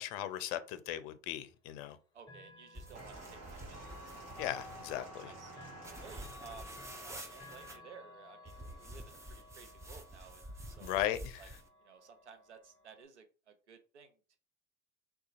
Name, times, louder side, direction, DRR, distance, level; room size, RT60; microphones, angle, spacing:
voice 1, 0.0-2.0 4.4-5.3 10.8-11.4, left 12 dB, 55° left, 0.5 m, -37 dB
voice 2, 2.1-4.2 5.2-5.7 6.0-6.7 7.1-8.5 8.8-11.0 11.4-11.5 11.8-14.4, right 6 dB, 85° right, 0.6 m, -56 dB
Chime / Clock, 2.2-13.1, left 2 dB, 15° left, 0.9 m, -55 dB
sound 1, 2.7-5.1 5.8-7.8 8.5-11.7, right 1 dB, 10° right, 0.5 m, -49 dB
sound 2, 2.9-7.1 8.0-8.1, right 2 dB, 45° right, 1.3 m, -52 dB
3.7 x 2.3 x 2.5 m
figure-of-eight pair, 75°, 34 cm